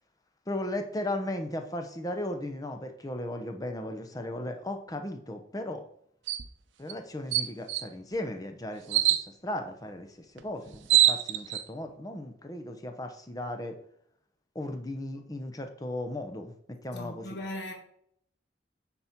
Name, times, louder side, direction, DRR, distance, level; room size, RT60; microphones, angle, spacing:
voice 1, 0.5-5.9 6.8-10.1 10.3-13.8 14.5-16.5 16.8-17.2, left 1 dB, 20° left, 0.8 m, -36 dB
sound 1, 6.3-6.5 6.9-7.0 7.3-7.8 8.9-9.2 10.4-10.5 10.7-11.6, right 13 dB, 80° right, 0.6 m, -23 dB
voice 2, 16.9-17.7, left 1 dB, 65° left, 1.5 m, -38 dB
9.2 x 4.2 x 4.5 m
head